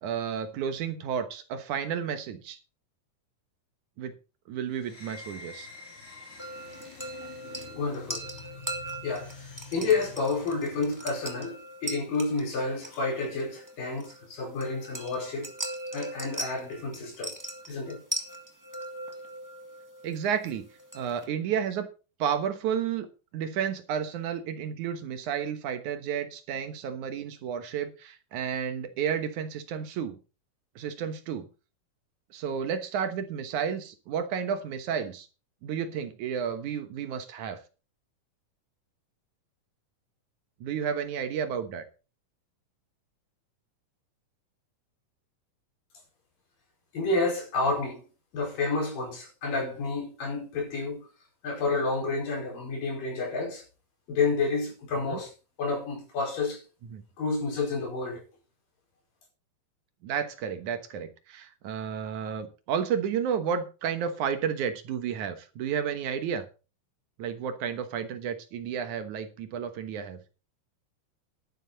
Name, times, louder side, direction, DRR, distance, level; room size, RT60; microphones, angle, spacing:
voice 1, 0.0-2.6 4.0-4.1 4.5-5.7 20.0-20.7 20.9-21.9 22.2-23.1 23.3-30.2 30.8-31.5 32.3-35.3 35.6-37.6 40.6-41.8 55.0-55.2 56.9-57.0 60.0-66.5 67.2-70.2, right 7 dB, 70° right, 2.6 m, -31 dB
sound 1, 4.8-11.4, left 4 dB, 60° left, 5.5 m, -47 dB
sound 2, 6.4-21.3, right 1 dB, 10° right, 1.1 m, -40 dB
voice 2, 7.8-8.5 9.0-9.4 9.7-15.5 15.9-17.3 17.7-18.0 46.9-48.0 48.3-51.1 51.4-53.6 54.1-55.3 55.6-56.6 57.2-58.2, left 3 dB, 90° left, 6.6 m, -30 dB
11.5 x 11.0 x 4.0 m
omnidirectional pair, 3.8 m